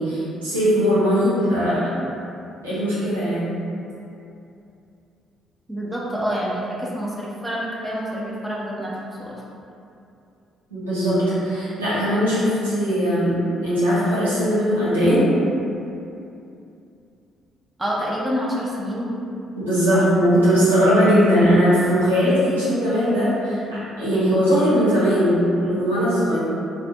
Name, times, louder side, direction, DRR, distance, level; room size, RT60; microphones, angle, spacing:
voice 1, 0.0-1.9 2.6-3.4 10.7-15.2 19.6-26.4, equal, 90° right, -12 dB, 0.7 m, -19 dB
voice 2, 5.7-8.9 9.2-9.4 17.8-19.1 19.9-20.0, equal, 10° right, -6 dB, 0.6 m, -27 dB
2.5 x 2.1 x 2.6 m, 2.7 s
hypercardioid pair, 45°, 0 cm